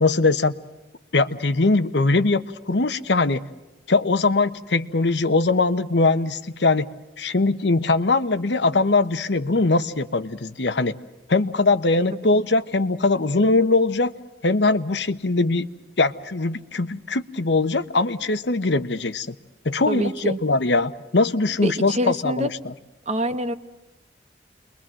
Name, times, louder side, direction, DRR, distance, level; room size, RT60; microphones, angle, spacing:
voice 1, 0.0-0.5 1.1-3.4 3.9-6.9 7.2-11.0 11.3-14.1 14.4-15.7 16.0-19.3 19.6-22.5, left 3 dB, 70° left, 12 dB, 1.0 m, -21 dB
voice 2, 19.9-20.4 21.6-22.5 23.1-23.5, right 1 dB, 40° right, 10 dB, 1.3 m, -25 dB
29.5 x 22.5 x 7.6 m, 1.1 s
head